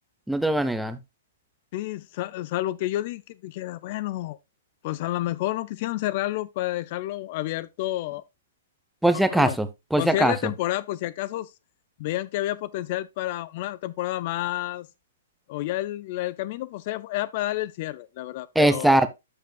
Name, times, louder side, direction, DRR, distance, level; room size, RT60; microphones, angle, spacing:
voice 1, 0.3-1.0 9.0-10.5 18.6-19.1, right 1 dB, ahead, 0.7 m, -21 dB
voice 2, 1.7-4.4 4.8-8.2 9.3-9.6 10.0-11.5 12.0-14.9 15.5-19.1, left 15 dB, 45° left, 0.3 m, -30 dB
13.0 x 5.2 x 2.3 m
hypercardioid pair, 140°, 0 cm